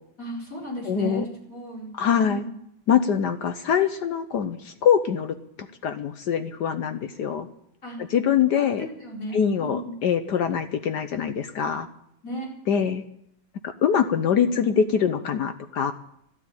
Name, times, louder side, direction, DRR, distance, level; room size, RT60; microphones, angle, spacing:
voice 1, 0.2-1.9 2.2-2.6 7.8-8.0 8.5-9.9 12.2-12.5, equal, 35° left, -2 dB, 5.0 m, -35 dB
voice 2, 0.9-1.3 1.9-2.4 2.9-5.4 5.8-7.5 8.1-8.9 9.3-11.9 12.7-13.0 13.8-15.9, left 8 dB, 65° left, 10 dB, 1.2 m, -23 dB
12.5 x 12.5 x 8.8 m, 0.77 s
omnidirectional pair, 2.4 m